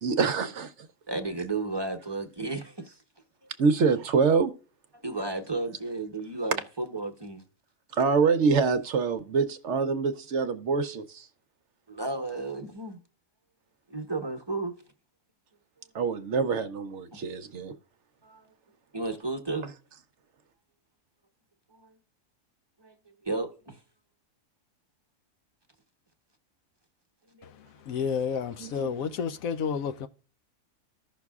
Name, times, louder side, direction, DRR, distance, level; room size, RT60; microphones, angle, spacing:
voice 1, 0.0-0.7 3.6-4.5 7.9-11.3 15.9-17.7 28.6-29.1, right 5 dB, 60° right, 0.9 m, -25 dB
voice 2, 1.1-3.0 5.0-7.4 11.9-13.0 13.9-14.7 17.1-17.2 18.2-18.5 18.9-19.7 21.7-21.9 22.8-23.0 23.2-23.8 27.3-27.5, right 2 dB, 20° right, 0.9 m, -33 dB
voice 3, 27.9-30.1, left 6 dB, 75° left, 1.1 m, -30 dB
15.0 x 6.0 x 2.3 m
omnidirectional pair, 1.5 m